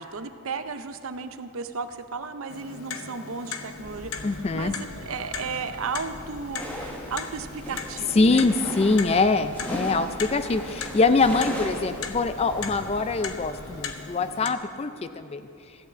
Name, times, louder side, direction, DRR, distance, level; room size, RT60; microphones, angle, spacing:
voice 1, 0.0-8.4, right 5 dB, 70° right, 10 dB, 0.6 m, -34 dB
Clock, 2.5-14.5, left 6 dB, 75° left, 0.7 m, -38 dB
Church bell, 3.6-13.9, equal, 45° right, 1.5 m, -45 dB
voice 2, 4.2-4.7 8.2-15.5, left 3 dB, 30° left, 11 dB, 0.4 m, -23 dB
sound 1, 6.6-13.2, equal, 10° left, 1.5 m, -38 dB
14.0 x 5.8 x 8.0 m, 2.5 s
head